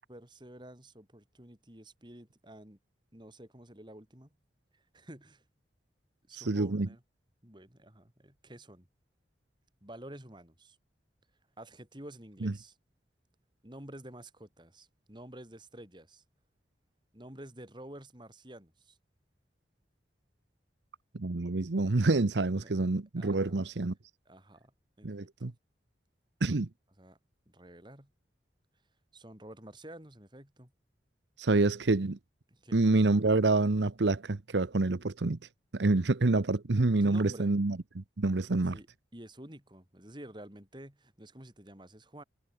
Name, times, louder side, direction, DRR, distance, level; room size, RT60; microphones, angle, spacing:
voice 1, 0.1-2.8 3.1-4.3 4.7-5.4 6.3-7.0 7.4-8.9 9.8-10.8 11.6-12.8 13.6-16.2 17.1-19.0 22.6-22.8 23.2-23.6 24.2-24.7 25.0-25.6 27.0-27.2 27.5-28.1 29.1-30.7 32.5-32.8 37.0-37.5 38.7-38.9 39.1-42.2, right 1 dB, 25° right, 4.4 m, -50 dB
voice 2, 6.4-6.9 12.4-12.5 21.1-23.9 25.0-25.5 26.4-26.7 31.4-32.2 32.7-35.4 35.7-38.8, right 3 dB, 85° right, 0.9 m, -27 dB
head